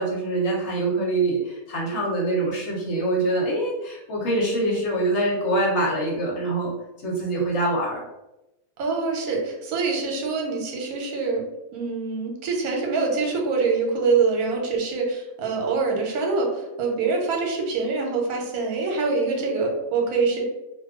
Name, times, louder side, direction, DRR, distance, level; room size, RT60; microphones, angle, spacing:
voice 1, 0.0-6.7 7.0-8.0, right 2 dB, 60° left, -3 dB, 0.9 m, -24 dB
voice 2, 8.8-11.5 11.7-20.4, right 4 dB, 80° right, 1 dB, 1.2 m, -25 dB
2.4 x 2.3 x 3.5 m, 0.96 s
omnidirectional pair, 1.5 m